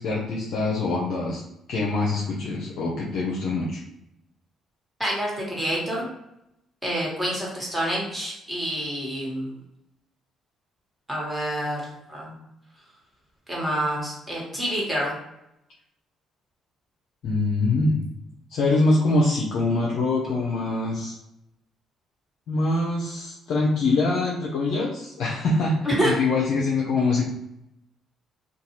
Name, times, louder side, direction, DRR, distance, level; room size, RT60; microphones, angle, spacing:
voice 1, 0.0-1.4 1.7-3.8 17.2-18.0 18.5-21.1 22.5-25.8 26.0-27.2, left 2 dB, 70° left, -3 dB, 0.5 m, -24 dB
voice 2, 5.0-6.1 6.8-9.5 11.1-12.4 13.5-15.2 25.8-26.1, equal, 10° right, -4 dB, 1.4 m, -27 dB
2.6 x 2.3 x 2.9 m, 0.84 s
supercardioid pair, 60°, 0 cm